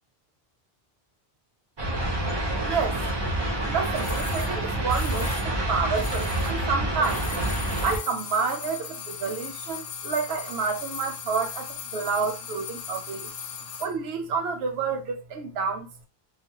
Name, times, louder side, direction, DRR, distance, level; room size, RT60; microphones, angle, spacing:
sound 1, 1.8-8.0, right 1 dB, 35° right, 0.5 m, -27 dB
voice 1, 2.6-3.2 3.7-7.3 7.8-13.3 13.8-16.1, right 5 dB, 80° right, 0.8 m, -29 dB
sound 2, 3.9-6.7 7.0-14.0 14.2-14.3, left 7 dB, 75° left, 0.8 m, -38 dB
2.3 x 2.0 x 2.8 m
omnidirectional pair, 1.0 m